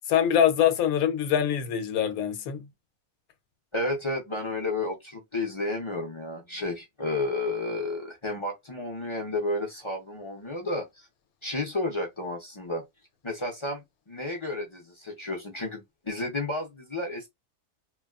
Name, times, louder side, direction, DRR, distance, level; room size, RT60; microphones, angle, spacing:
voice 1, 0.1-2.6, left 9 dB, 80° left, 1.1 m, -24 dB
voice 2, 3.7-11.1 11.4-12.8 13.2-17.3, left 2 dB, 35° left, 0.4 m, -32 dB
3.1 x 2.2 x 2.3 m
omnidirectional pair, 1.5 m